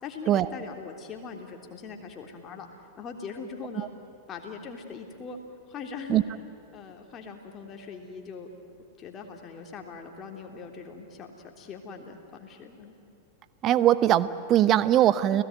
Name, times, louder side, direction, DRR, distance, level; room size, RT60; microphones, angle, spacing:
voice 1, 0.0-2.7 3.0-3.9 4.3-5.4 5.7-6.2 6.7-8.5 9.0-12.9 15.3-15.4, left 5 dB, 30° left, 3 dB, 3.4 m, -41 dB
voice 2, 13.6-15.4, right 12 dB, 35° right, 15 dB, 0.9 m, -21 dB
30.0 x 17.5 x 9.4 m, 2.7 s
figure-of-eight pair, 90°, 0 cm